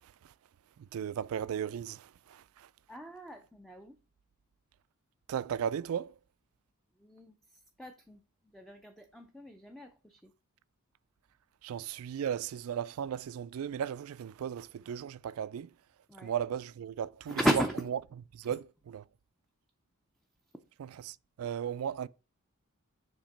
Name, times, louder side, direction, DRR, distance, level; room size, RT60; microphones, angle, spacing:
voice 1, 0.9-2.7 5.3-6.1 11.6-15.7 16.2-17.4 18.3-19.0 21.1-22.1, right 8 dB, 70° right, 0.3 m, -36 dB
voice 2, 2.9-3.9 7.0-10.3 16.1-16.3 17.3-17.9 18.4-18.6, equal, ahead, 0.5 m, -36 dB
7.2 x 2.9 x 5.2 m
head